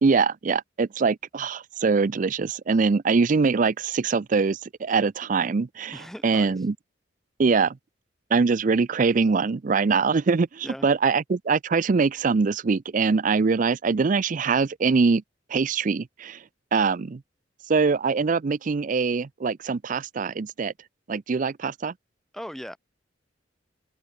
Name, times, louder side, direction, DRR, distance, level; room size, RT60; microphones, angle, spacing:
voice 1, 0.0-6.8 7.4-7.8 8.3-15.2 15.5-17.2 17.7-20.7 21.1-21.9, right 4 dB, 40° right, 0.4 m, -23 dB
voice 2, 5.9-6.5 10.6-10.9 22.3-22.8, equal, ahead, 3.2 m, -38 dB
open air
head